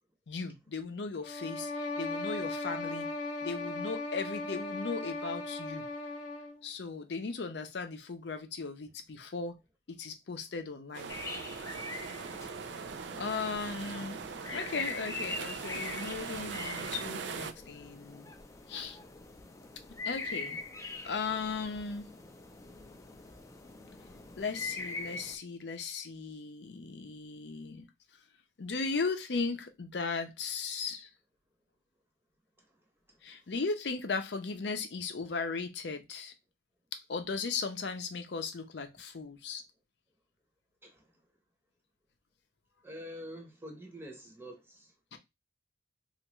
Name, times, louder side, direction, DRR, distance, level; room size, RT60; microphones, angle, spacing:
voice 1, 0.3-3.1 3.4-5.8 6.6-9.6 9.9-11.1 13.1-14.2 14.5-18.3 18.7-19.0 20.1-20.6 21.0-22.1 24.4-27.9 28.6-31.1 33.2-36.3 36.9-39.6 45.1-45.2, left 4 dB, 70° left, 0.6 m, -37 dB
sound 1, 1.2-6.6, left 2 dB, 45° left, 1.0 m, -37 dB
sound 2, 10.9-17.5, right 5 dB, 80° right, 0.4 m, -41 dB
sound 3, 11.1-25.3, left 3 dB, 20° left, 0.4 m, -43 dB
voice 2, 32.6-33.4 40.8-41.2 42.8-44.9, equal, 15° right, 0.8 m, -48 dB
3.4 x 2.5 x 3.0 m
head